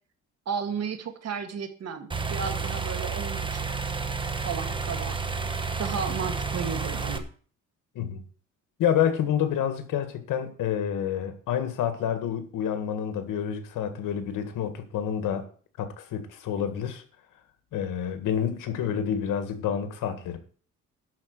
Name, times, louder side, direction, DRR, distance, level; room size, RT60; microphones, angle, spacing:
voice 1, 0.5-3.7 4.5-5.2 5.8-7.3, right 6 dB, 50° right, 1.8 m, -33 dB
sound 1, 2.1-7.2, right 4 dB, 15° right, 1.0 m, -30 dB
voice 2, 8.8-15.5 15.8-17.0 17.7-20.4, left 9 dB, 80° left, 1.9 m, -28 dB
11.5 x 4.9 x 8.1 m
cardioid pair, 140°, 32 cm